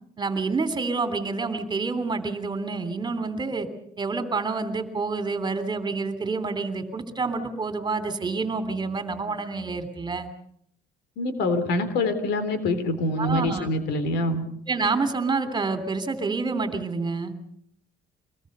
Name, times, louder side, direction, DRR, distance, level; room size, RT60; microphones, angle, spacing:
voice 1, 0.2-3.7 4.0-10.3 13.2-13.7 14.7-17.3, right 4 dB, 25° right, 11 dB, 3.0 m, -28 dB
voice 2, 11.2-14.5, left 2 dB, 80° left, 11 dB, 3.7 m, -25 dB
24.5 x 20.5 x 6.8 m, 0.68 s
cardioid pair, 110°, 17 cm